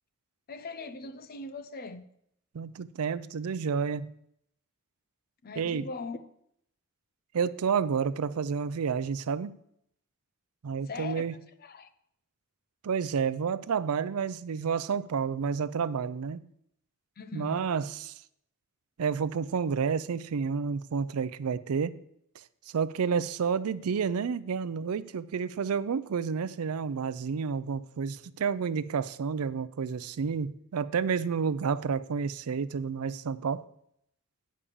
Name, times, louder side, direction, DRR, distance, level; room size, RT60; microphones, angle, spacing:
voice 1, 0.5-2.1 5.4-6.2 10.9-11.2 11.6-11.9 17.2-17.6, left 3 dB, 45° left, 0.5 m, -40 dB
voice 2, 2.5-4.1 5.6-5.8 7.3-9.5 10.6-11.3 12.8-16.5 17.3-18.1 19.0-22.0 22.7-33.7, right 6 dB, 75° right, 0.4 m, -30 dB
8.5 x 5.3 x 6.9 m
head